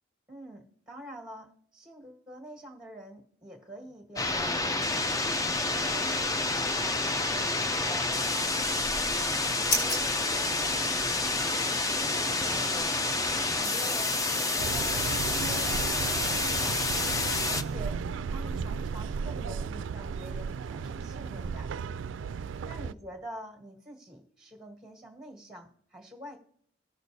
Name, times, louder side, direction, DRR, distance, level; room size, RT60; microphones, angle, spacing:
voice 1, 0.3-5.2 5.7-9.1 9.7-12.9 13.5-16.8 17.4-18.0 18.3-21.7 22.7-26.4, right 1 dB, 5° right, 1 dB, 1.6 m, -46 dB
sound 1, 4.2-17.6, left 2 dB, 20° left, 0.5 m, -29 dB
sound 2, 8.6-11.4, left 1 dB, 60° left, 3.1 m, -35 dB
sound 3, 14.6-22.9, right 5 dB, 85° right, 0.3 m, -35 dB
15.5 x 6.4 x 2.7 m, 0.65 s
head